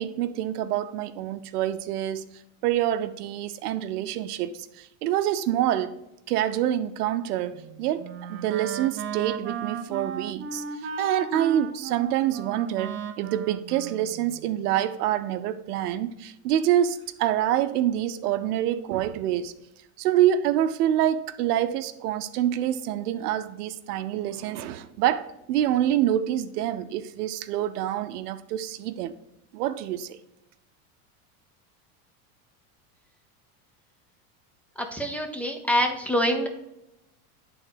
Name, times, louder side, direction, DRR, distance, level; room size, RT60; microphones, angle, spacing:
voice 1, 0.0-2.3 2.6-5.9 6.3-10.6 11.0-19.5 20.0-29.1 29.5-30.2, right 11 dB, 85° right, 0.7 m, -26 dB
Wind instrument woodwind instrument, 7.5-14.7, right 6 dB, 30° right, 0.5 m, -35 dB
voice 2, 34.8-36.5, equal, 5° left, 0.9 m, -25 dB
8.9 x 3.9 x 4.9 m
supercardioid pair, 115°, 45 cm